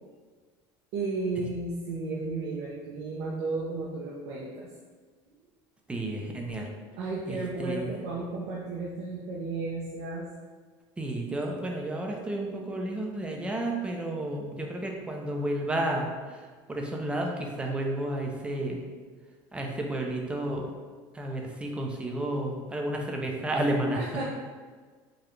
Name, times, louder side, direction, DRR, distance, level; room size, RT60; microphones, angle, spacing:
voice 1, 0.9-4.7 7.0-10.3 23.9-24.3, right 3 dB, 65° right, -4 dB, 0.6 m, -33 dB
voice 2, 5.9-6.7 7.3-7.9 11.0-16.1 16.7-18.8 19.5-20.7 21.2-24.0, right 1 dB, 10° right, 1 dB, 0.5 m, -31 dB
4.8 x 2.3 x 3.1 m, 1.5 s
cardioid pair, 145°, 10 cm